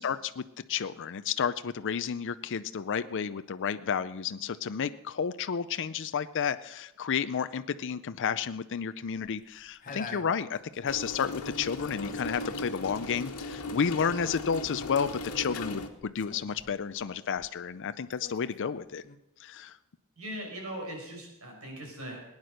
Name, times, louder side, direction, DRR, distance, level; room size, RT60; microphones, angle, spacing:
voice 1, 0.0-19.0 19.4-19.8, left 7 dB, 60° left, 12 dB, 0.5 m, -31 dB
sound 1, 9.1-11.5 11.8-17.8 18.1-19.2, left 4 dB, 40° left, 1.0 m, -48 dB
sound 2, 10.9-15.9, left 2 dB, 85° left, 1.5 m, -38 dB
voice 2, 20.2-22.2, equal, 75° right, 1 dB, 5.7 m, -40 dB
18.5 x 9.7 x 6.5 m, 0.86 s
head